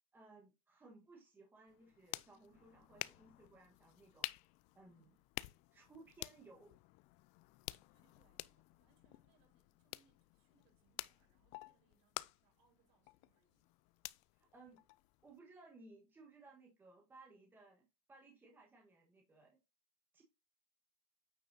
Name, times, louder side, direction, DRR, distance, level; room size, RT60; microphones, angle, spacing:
voice 1, 0.1-4.3 4.7-5.0 5.7-6.8 14.3-14.8 15.2-19.6 20.1-20.2, right 3 dB, 10° right, 1.4 m, -61 dB
sound 1, 1.7-15.4, left 21 dB, 40° left, 0.4 m, -51 dB
voice 2, 7.9-13.7, right 5 dB, 55° right, 5.0 m, -78 dB
9.0 x 5.3 x 2.7 m
supercardioid pair, 135°, 18 cm